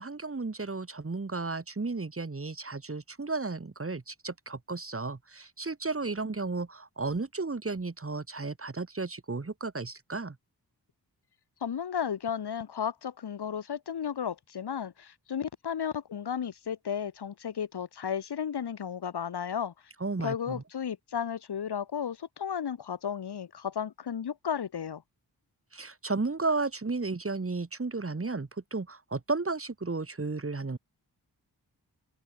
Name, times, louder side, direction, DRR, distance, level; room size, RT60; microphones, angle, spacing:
voice 1, 0.0-10.3 20.0-20.6 25.7-30.8, right 3 dB, 35° right, 2.3 m, -33 dB
voice 2, 11.6-19.7 20.2-25.0, left 8 dB, 70° left, 1.6 m, -34 dB
cardioid pair, 45°, 40 cm